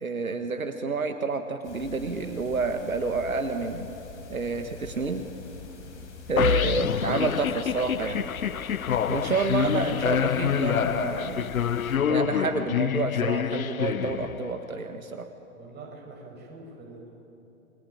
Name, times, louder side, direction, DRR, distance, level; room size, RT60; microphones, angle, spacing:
voice 1, 0.0-3.9 4.3-5.2 6.3-8.3 9.1-11.5 12.1-15.3, right 4 dB, 80° right, 7 dB, 1.6 m, -29 dB
sound 1, 1.6-12.0, left 5 dB, 55° left, 6.4 m, -44 dB
sound 2, 6.4-14.7, left 8 dB, 80° left, 0.7 m, -27 dB
voice 2, 6.4-7.0 15.5-17.1, right 3 dB, 25° right, 0 dB, 7.7 m, -45 dB
29.0 x 22.0 x 8.9 m, 2.9 s
figure-of-eight pair, 105°, 41 cm